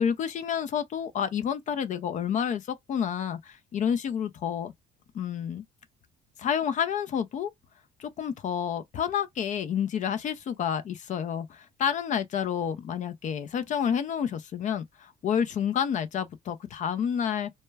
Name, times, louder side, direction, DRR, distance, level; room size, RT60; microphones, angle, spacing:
voice 1, 0.0-4.7 5.1-5.6 6.4-7.5 8.0-17.5, left 8 dB, 45° left, 0.4 m, -29 dB
2.2 x 2.1 x 3.2 m
cardioid pair, 110°, 17 cm